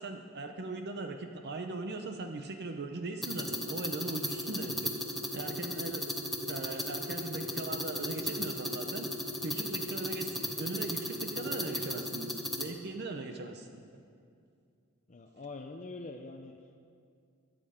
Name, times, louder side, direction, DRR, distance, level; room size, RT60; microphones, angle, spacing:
voice 1, 0.0-4.9 5.3-6.1 6.5-9.1 9.4-13.7, right 2 dB, 50° right, 5 dB, 0.7 m, -39 dB
sound 1, 3.2-12.7, left 1 dB, ahead, 1.1 m, -36 dB
voice 2, 15.1-16.5, left 3 dB, 35° left, 2 dB, 0.6 m, -44 dB
22.5 x 7.6 x 5.0 m, 2.3 s
head